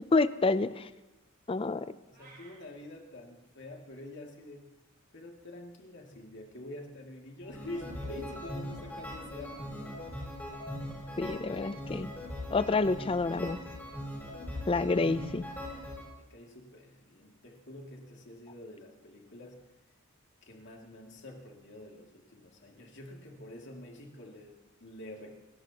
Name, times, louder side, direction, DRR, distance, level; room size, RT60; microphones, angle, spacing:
voice 1, 0.1-0.9 1.5-1.9 11.2-12.1 12.5-13.6 14.7-15.4, left 3 dB, 25° left, 14 dB, 0.4 m, -28 dB
voice 2, 2.1-4.7 5.1-9.9 16.3-19.6 20.4-25.4, left 1 dB, 55° left, 1 dB, 2.4 m, -47 dB
sound 1, 2.1-2.6, right 3 dB, 45° right, 6.5 m, -54 dB
sound 2, 7.4-16.1, left 1 dB, 10° left, 6.6 m, -40 dB
28.5 x 13.0 x 2.9 m, 1.1 s
head